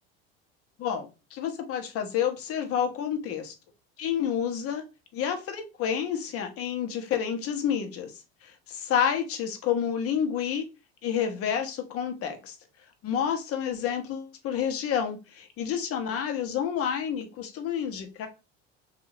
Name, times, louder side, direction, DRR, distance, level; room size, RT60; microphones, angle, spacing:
voice 1, 0.8-3.5 4.0-4.8 5.1-10.6 11.0-12.6 13.0-18.3, left 8 dB, 45° left, 6 dB, 0.8 m, -29 dB
2.6 x 2.4 x 3.1 m, 0.28 s
hypercardioid pair, 80°, 32 cm